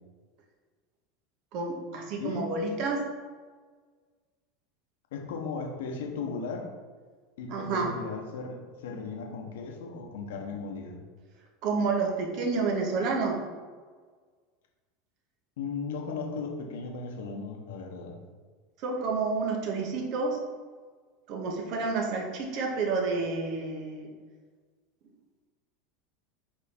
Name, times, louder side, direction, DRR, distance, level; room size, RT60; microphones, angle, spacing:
voice 1, 1.5-3.0 7.5-7.9 11.6-13.4 18.8-20.4 21.3-24.1, right 4 dB, 55° right, 1 dB, 1.3 m, -29 dB
voice 2, 5.1-6.7 7.4-11.0 15.6-18.2, left 4 dB, 70° left, 1 dB, 1.0 m, -36 dB
5.0 x 4.4 x 4.3 m, 1.5 s
hypercardioid pair, 80°, 0 cm